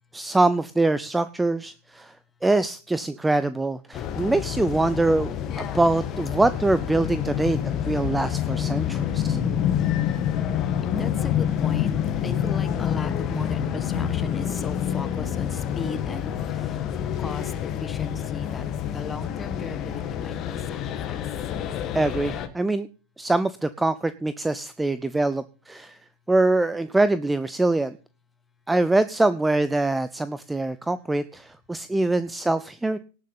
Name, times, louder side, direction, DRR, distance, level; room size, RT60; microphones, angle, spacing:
voice 1, 0.1-2.1 2.4-7.6 7.9-9.4 21.9-22.9 23.2-26.0 26.3-28.0 28.7-33.0, right 2 dB, 5° right, 15 dB, 0.6 m, -24 dB
sound 1, 3.9-22.5, left 9 dB, 35° left, 1.7 m, -27 dB
voice 2, 8.8-9.4 10.9-11.9 12.2-16.8 17.2-18.7 18.9-20.8, left 4 dB, 15° left, 11 dB, 1.7 m, -36 dB
18.5 x 6.6 x 5.6 m, 0.36 s
figure-of-eight pair, 95°, 0 cm